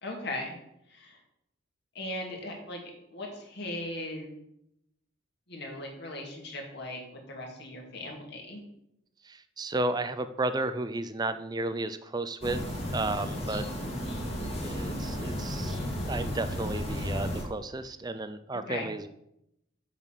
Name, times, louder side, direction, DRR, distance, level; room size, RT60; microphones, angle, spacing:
voice 1, 0.0-0.6 0.9-1.2 1.9-4.3 5.5-7.0 7.3-8.6 18.7-18.9, left 1 dB, 55° left, 1 dB, 2.2 m, -38 dB
voice 2, 9.2-12.6 12.9-13.7 14.6-15.8 16.0-19.1, right 2 dB, 20° right, 11 dB, 0.5 m, -33 dB
sound 1, 12.4-17.4, equal, 30° left, 1.8 m, -33 dB
7.3 x 5.9 x 6.6 m, 0.81 s
head